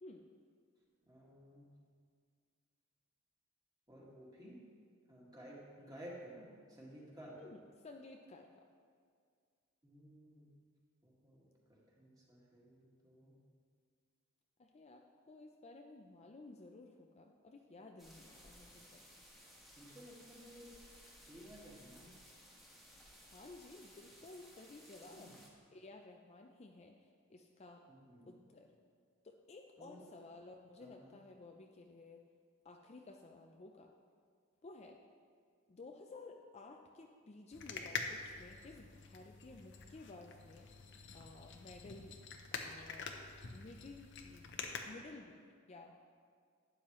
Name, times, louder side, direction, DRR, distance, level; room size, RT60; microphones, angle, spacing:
voice 1, 1.1-1.7 3.9-4.6 5.1-7.4 9.8-10.5 11.0-13.3 19.8-20.7 21.3-22.1 25.1-25.3 27.9-28.3 29.8-30.0 30.8-31.1, equal, 20° right, -5 dB, 1.9 m, -55 dB
voice 2, 7.4-8.7 14.6-19.1 23.2-25.4 25.7-27.8 28.3-28.7 29.2-32.2 32.6-34.0 34.6-35.0 35.7-40.7 41.1-42.2 42.5-43.1 43.5-44.6 44.8-45.4 45.7-46.0, left 2 dB, 30° left, 2 dB, 0.4 m, -55 dB
sound 1, 18.0-25.5, equal, ahead, 1.4 m, -59 dB
sound 2, 37.5-44.8, left 5 dB, 55° left, 0.7 m, -46 dB
11.5 x 9.2 x 3.1 m, 2.1 s
head